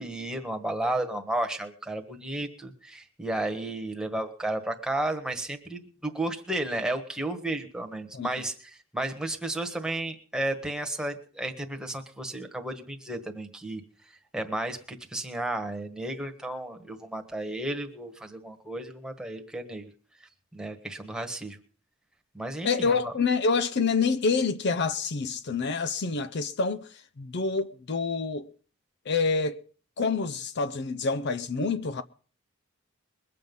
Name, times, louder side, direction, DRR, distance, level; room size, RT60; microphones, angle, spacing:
voice 1, 0.0-13.8 14.3-19.9 20.5-21.6 22.3-23.1, right 1 dB, 5° right, 1.4 m, -33 dB
voice 2, 22.6-28.5 29.1-29.6 30.0-32.0, left 4 dB, 55° left, 0.6 m, -27 dB
21.5 x 7.7 x 5.4 m
head